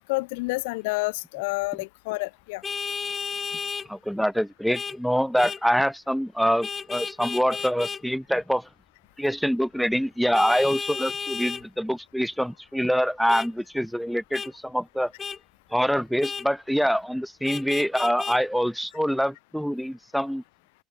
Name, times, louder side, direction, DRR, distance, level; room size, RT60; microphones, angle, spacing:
voice 1, 0.0-2.6, left 25 dB, 65° left, 2.1 m, -29 dB
Vehicle horn car horn honking, 2.6-3.9 4.7-5.0 5.4-5.6 6.6-8.0 10.3-11.6 13.3-13.5 14.3-14.5 15.2-15.4 16.2-16.5 17.4-18.4, left 5 dB, 30° left, 2.6 m, -33 dB
voice 2, 3.9-8.7 9.2-15.1 15.7-20.4, equal, ahead, 5.5 m, -25 dB
open air
figure-of-eight pair, 65°, 0 cm